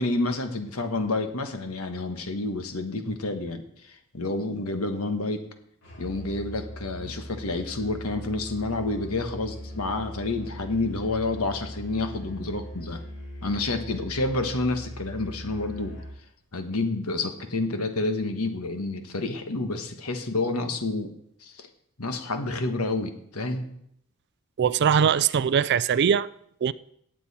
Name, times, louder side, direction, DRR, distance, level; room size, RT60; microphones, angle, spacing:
voice 1, 0.0-3.6 3.9-5.4 6.0-13.0 13.4-16.0 16.5-21.1 21.4-21.7 22.0-23.7, left 2 dB, 75° left, 1.4 m, -29 dB
Musical instrument, 5.8-16.2, equal, 90° left, 5.6 m, -40 dB
voice 2, 24.6-26.3 26.6-26.7, right 7 dB, 50° right, 0.4 m, -21 dB
18.0 x 7.4 x 4.3 m
head